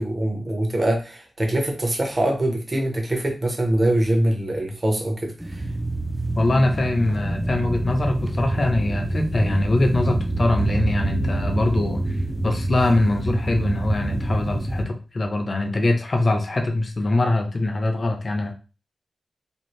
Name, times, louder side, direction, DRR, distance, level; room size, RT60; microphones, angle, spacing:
voice 1, 0.0-5.6, right 1 dB, 30° right, 1 dB, 0.7 m, -23 dB
sound 1, 5.4-14.9, right 1 dB, 5° right, 0.3 m, -26 dB
voice 2, 6.3-12.0 12.4-18.5, left 2 dB, 45° left, 4 dB, 0.5 m, -23 dB
2.6 x 2.4 x 3.1 m, 0.34 s
wide cardioid pair, 100°, 0 cm